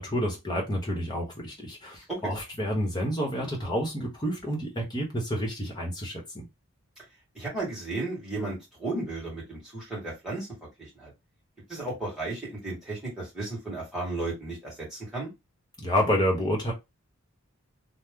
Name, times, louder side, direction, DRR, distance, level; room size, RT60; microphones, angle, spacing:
voice 1, 0.0-6.4 15.8-16.7, equal, 20° left, 1.0 m, -29 dB
voice 2, 7.3-10.5 10.8-11.1 11.7-15.3, right 2 dB, ahead, 1.8 m, -34 dB
3.1 x 2.1 x 3.6 m
head